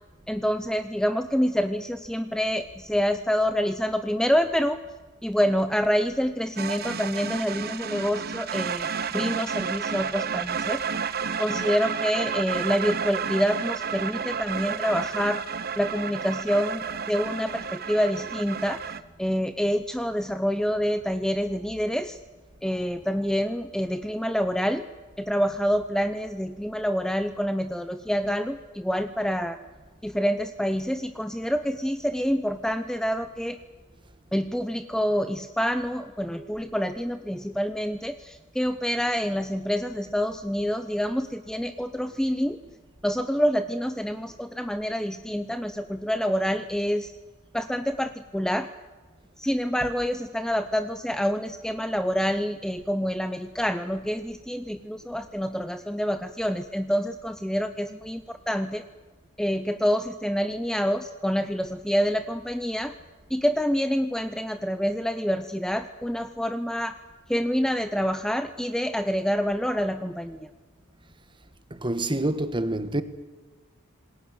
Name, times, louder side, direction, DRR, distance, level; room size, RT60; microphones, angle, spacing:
voice 1, 0.3-4.8 5.2-8.9 9.1-10.8 11.4-15.4 15.8-18.8 19.2-22.2 22.6-24.9 25.2-29.6 30.0-33.6 34.3-42.6 43.0-47.1 47.5-48.7 49.4-58.8 59.4-62.9 63.3-67.0 67.3-70.5, equal, 5° left, 0.7 m, -27 dB
sound 1, 6.6-19.0, right 6 dB, 45° right, 1.0 m, -31 dB
voice 2, 71.7-73.0, right 1 dB, 20° right, 1.5 m, -27 dB
27.5 x 21.0 x 7.8 m
head